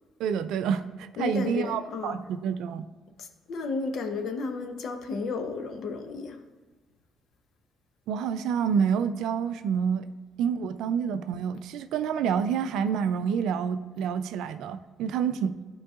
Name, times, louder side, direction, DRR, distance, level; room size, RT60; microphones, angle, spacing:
voice 1, 0.2-2.9 8.1-10.1 10.4-15.6, right 7 dB, 80° right, 0.4 m, -28 dB
voice 2, 1.2-2.3 3.2-6.5, left 4 dB, 65° left, 0.7 m, -33 dB
11.5 x 4.6 x 2.4 m
cardioid pair, 75°, 0 cm